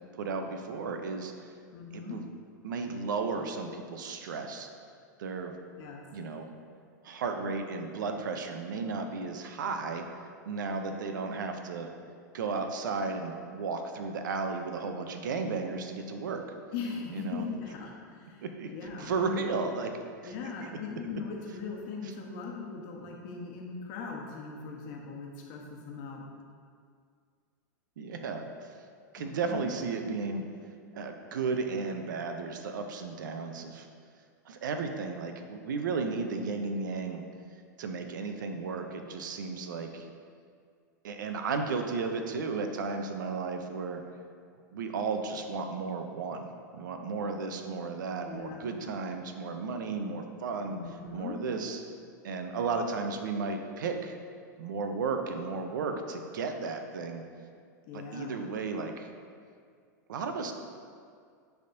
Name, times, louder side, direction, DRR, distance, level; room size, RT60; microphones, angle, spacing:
voice 1, 0.2-1.3 1.9-2.2 2.6-4.7 5.2-5.5 6.1-6.5 7.0-10.1 10.5-11.9 12.3-16.4 17.1-17.4 18.4-18.7 19.0-20.0 20.2-20.3 28.0-28.5 29.1-30.4 30.9-33.9 34.5-37.2 37.8-40.1 41.0-44.0 44.7-46.5 46.7-50.8 51.1-51.8 52.2-54.1 54.6-57.2 57.9-59.1 60.1-60.5, right 4 dB, 80° right, 6 dB, 0.6 m, -34 dB
voice 2, 1.7-2.2 5.8-6.0 16.7-18.4 18.7-19.6 20.2-26.2 29.2-29.6 48.2-48.6 50.7-51.4 57.9-58.3, left 5 dB, 50° left, -1 dB, 1.1 m, -39 dB
10.0 x 3.5 x 2.6 m, 2.2 s
hypercardioid pair, 105°, 10 cm